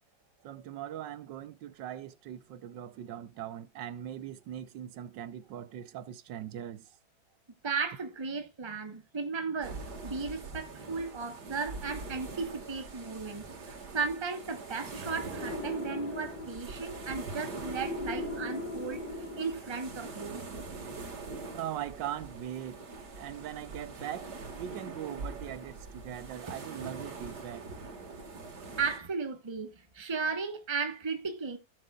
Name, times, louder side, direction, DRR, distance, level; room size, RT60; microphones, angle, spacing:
voice 1, 0.4-6.9 21.5-22.8 23.2-24.3 24.6-27.7, right 11 dB, 90° right, 1.5 m, -40 dB
voice 2, 7.6-19.0 19.4-20.4 28.8-31.6, right 5 dB, 20° right, 1.0 m, -35 dB
sound 1, 9.6-29.0, right 3 dB, 65° right, 2.4 m, -43 dB
sound 2, 15.3-20.0, left 2 dB, 85° left, 2.9 m, -40 dB
16.0 x 6.6 x 2.4 m
omnidirectional pair, 1.9 m